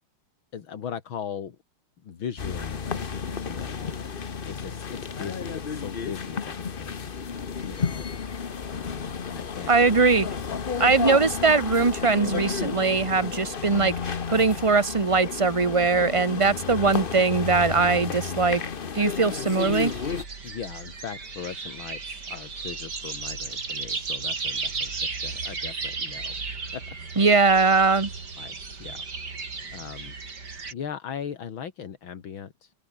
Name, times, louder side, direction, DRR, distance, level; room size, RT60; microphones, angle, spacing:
voice 1, 0.5-1.6 2.0-7.2 7.6-8.1 8.7-9.7 10.5-10.9 20.4-26.3 26.7-26.8 27.1-27.2 28.4-30.2 30.7-32.7, left 8 dB, 70° left, 2.7 m, -39 dB
sound 1, 2.4-20.2, left 6 dB, 35° left, 0.9 m, -32 dB
voice 2, 9.7-10.3 10.8-18.6 18.9-19.9 27.2-28.1, right 4 dB, 25° right, 0.8 m, -21 dB
sound 2, 19.6-30.7, right 4 dB, 50° right, 4.0 m, -34 dB
omnidirectional pair, 2.3 m